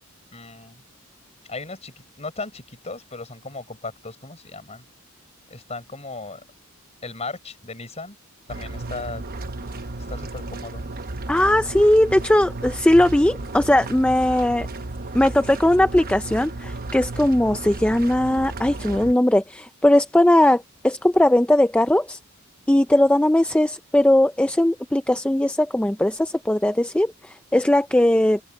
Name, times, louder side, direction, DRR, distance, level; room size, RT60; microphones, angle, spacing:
voice 1, 0.3-0.8 1.5-4.8 5.5-6.4 7.0-8.2 8.5-9.2 10.1-10.8, left 3 dB, 30° left, 4.4 m, -36 dB
sound 1, 8.5-19.1, right 2 dB, 40° right, 0.9 m, -34 dB
voice 2, 11.3-14.7 15.1-22.2 22.7-28.4, left 1 dB, 5° left, 0.4 m, -19 dB
head